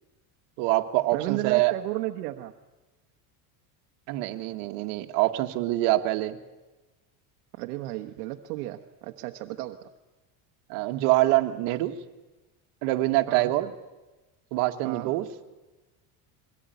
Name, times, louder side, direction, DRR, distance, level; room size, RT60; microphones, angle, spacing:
voice 1, 0.6-1.7 4.1-6.4 10.7-11.9 12.8-13.7 14.5-15.3, right 17 dB, 70° right, 5 dB, 1.8 m, -25 dB
voice 2, 1.1-2.5 7.6-9.9 13.3-13.5 14.8-15.1, right 17 dB, 90° right, 5 dB, 1.3 m, -33 dB
22.5 x 18.5 x 9.3 m, 1.1 s
cardioid pair, 130°, 44 cm